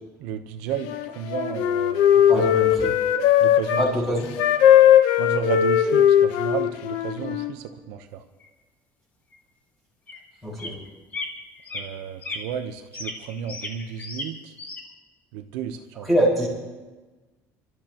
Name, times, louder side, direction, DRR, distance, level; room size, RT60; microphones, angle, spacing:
voice 1, 0.2-0.9 1.1-2.5 2.8-2.9 3.4-3.8 5.2-8.2 11.7-14.5 15.3-16.1, right 8 dB, 85° right, 6 dB, 1.0 m, -32 dB
Wind instrument woodwind instrument, 0.8-3.9 4.4-7.5, left 10 dB, 80° left, 1.0 m, -19 dB
voice 2, 2.3-3.0 3.8-4.3 10.4-10.7 16.1-16.5, equal, ahead, -5 dB, 5.1 m, -23 dB
sound 1, 8.4-8.5 9.3-9.4 10.1-10.2 10.6-10.9 11.1-11.3 11.6-11.8 12.2-12.4 12.9-14.3 14.6-14.8, left 2 dB, 25° left, 1.5 m, -35 dB
28.5 x 12.5 x 3.0 m, 1.2 s
cardioid pair, 170°, 7 cm